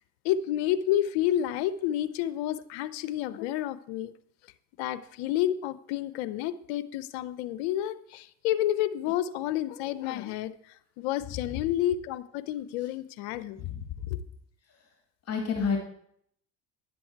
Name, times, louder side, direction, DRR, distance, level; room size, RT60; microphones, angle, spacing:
voice 1, 0.2-4.1 4.8-10.5 11.0-13.6, left 12 dB, 85° left, 14 dB, 0.6 m, -30 dB
voice 2, 13.6-14.2 15.3-15.8, left 6 dB, 45° left, 2 dB, 2.4 m, -30 dB
10.5 x 7.7 x 4.5 m, 0.68 s
supercardioid pair, 80°, 34 cm